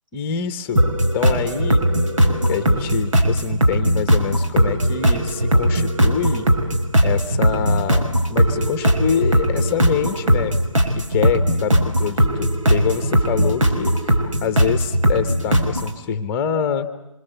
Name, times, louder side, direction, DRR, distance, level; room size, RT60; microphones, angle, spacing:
voice 1, 0.1-1.8 2.4-6.5 7.0-10.6 10.9-16.9, left 7 dB, 10° left, 10 dB, 1.3 m, -25 dB
sound 1, 0.8-15.9, equal, 70° right, 5.7 m, -19 dB
26.5 x 25.0 x 8.2 m, 0.89 s
figure-of-eight pair, 160°, 17 cm